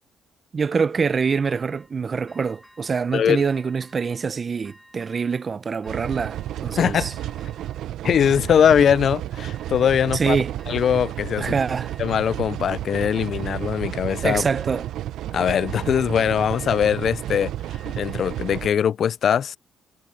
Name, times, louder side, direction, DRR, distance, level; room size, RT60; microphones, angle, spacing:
voice 1, 0.5-7.1 10.1-10.5 11.4-11.9 14.2-14.9, right 5 dB, 40° right, 0.7 m, -25 dB
sound 1, 1.2-1.9 2.3-3.1 3.5-4.3 4.6-5.5 5.8-6.7 7.0-7.9 8.2-9.1 9.4-10.3 10.6-11.4 11.8-12.6 13.0-13.8 14.1-15.0 15.3-16.2 16.5-18.6, equal, ahead, 3.2 m, -52 dB
voice 2, 3.1-3.4 6.8-7.1 8.0-10.4 10.7-11.5 12.0-14.4 15.3-17.5 18.0-19.6, left 8 dB, 60° left, 0.3 m, -21 dB
sound 2, 5.8-18.7, right 13 dB, 80° right, 0.6 m, -31 dB
cardioid pair, 90°, 0 cm